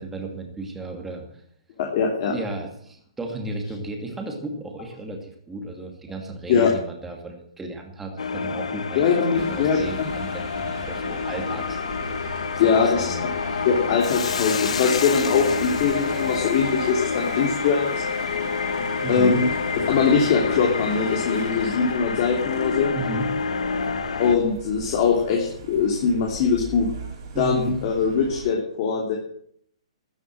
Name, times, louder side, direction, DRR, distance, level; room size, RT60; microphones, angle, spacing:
voice 1, 0.0-1.4 2.2-11.8 12.7-13.7 19.0-19.4 22.9-23.3 27.3-27.8, right 2 dB, 5° right, 2 dB, 2.5 m, -34 dB
voice 2, 1.8-2.3 6.5-6.7 8.9-10.1 12.6-13.1 13.6-17.9 19.1-19.5 19.9-22.9 24.2-26.9 27.4-29.2, left 5 dB, 35° left, 0 dB, 3.1 m, -22 dB
sound 1, 8.2-24.4, left 5 dB, 90° left, 1.5 m, -28 dB
sound 2, 9.3-28.5, right 4 dB, 40° right, 4.3 m, -39 dB
Hiss, 14.0-18.5, left 7 dB, 75° left, 1.4 m, -34 dB
13.5 x 11.5 x 7.8 m, 0.65 s
hypercardioid pair, 165°, 3 cm